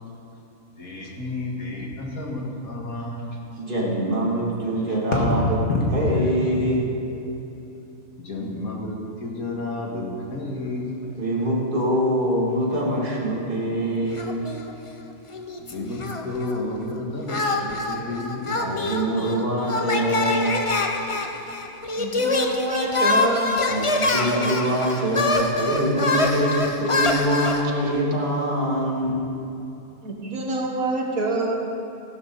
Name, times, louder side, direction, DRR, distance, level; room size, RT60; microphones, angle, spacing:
voice 1, 0.8-3.4 4.9-6.6 7.1-7.4 7.7-7.8 8.2-11.1 13.1-13.5 15.6-18.9, left 2 dB, 75° left, -2 dB, 2.3 m, -30 dB
voice 2, 3.6-5.4 5.9-6.9 10.6-10.7 11.2-14.4 18.0-20.7 21.1-21.3 23.7-29.3, right 1 dB, 35° right, -6 dB, 2.7 m, -24 dB
sound 1, 14.2-15.0 15.3-16.6 17.3-27.6, left 2 dB, 30° left, 0.6 m, -25 dB
voice 3, 22.0-23.5 27.0-27.1 30.0-31.6, right 2 dB, 75° right, 1 dB, 1.9 m, -26 dB
15.5 x 12.0 x 4.1 m, 2.7 s
omnidirectional pair, 1.5 m